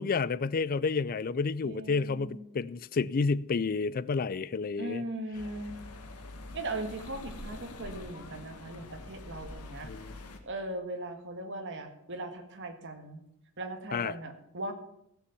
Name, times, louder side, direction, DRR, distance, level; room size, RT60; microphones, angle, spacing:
voice 1, 0.0-5.0 9.8-10.1 13.9-14.1, left 4 dB, 40° left, 0.4 m, -30 dB
voice 2, 1.6-2.4 4.8-5.8 6.5-9.9 10.4-13.2 13.6-14.7, right 1 dB, 55° right, 1.8 m, -39 dB
sound 1, 5.3-10.4, left 2 dB, 80° left, 1.6 m, -45 dB
15.5 x 7.0 x 7.0 m
head